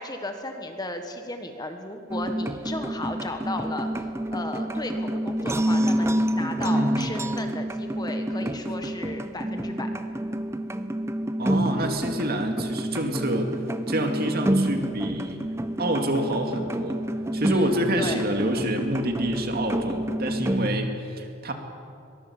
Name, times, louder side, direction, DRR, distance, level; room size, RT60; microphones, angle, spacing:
voice 1, 0.0-9.9 17.4-18.2, left 1 dB, 20° left, 6 dB, 1.5 m, -35 dB
sound 1, 2.1-20.7, right 1 dB, 15° right, 0.7 m, -28 dB
voice 2, 11.4-15.4 15.8-17.0 17.3-21.5, right 1 dB, 45° right, 4 dB, 2.4 m, -27 dB
22.5 x 21.5 x 7.3 m, 2.5 s
head